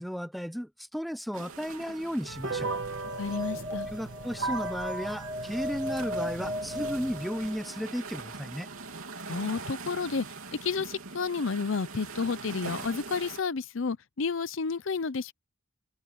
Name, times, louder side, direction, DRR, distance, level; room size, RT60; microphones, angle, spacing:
voice 1, 0.0-2.8 3.9-8.7, equal, ahead, 0.5 m, -34 dB
sound 1, 1.3-13.4, right 4 dB, 90° right, 3.3 m, -43 dB
sound 2, 2.3-7.2, right 3 dB, 60° right, 1.3 m, -37 dB
sound 3, 3.0-7.9, left 1 dB, 20° right, 1.5 m, -37 dB
voice 2, 3.2-3.9 9.3-10.3 10.6-15.3, left 4 dB, 65° left, 0.7 m, -31 dB
head